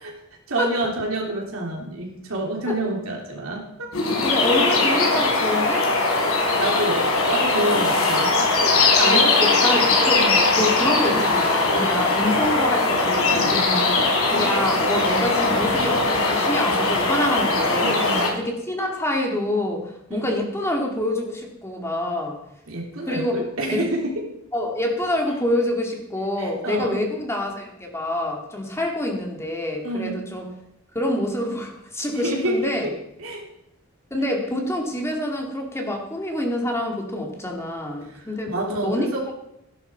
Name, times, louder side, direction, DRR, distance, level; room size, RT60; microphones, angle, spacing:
voice 1, 0.5-3.9 6.4-9.7 10.2-10.4 11.8-11.9 13.3-13.9 17.8-18.3 20.1-20.3 22.7-24.3 26.4-27.0 29.8-30.2 32.1-32.9 33.2-33.4 38.1-38.2 38.5-39.2, right 1 dB, 70° right, -1 dB, 3.4 m, -28 dB
sound 1, 3.9-18.3, left 3 dB, 90° left, 3.5 m, -20 dB
voice 2, 4.1-5.9 8.0-8.1 9.0-10.2 10.5-13.5 14.3-17.9 18.3-22.4 23.1-23.4 23.7-23.8 24.5-30.5 30.9-32.9 34.1-39.3, left 1 dB, 15° left, 1 dB, 2.2 m, -26 dB
16.5 x 11.0 x 4.6 m, 0.83 s
head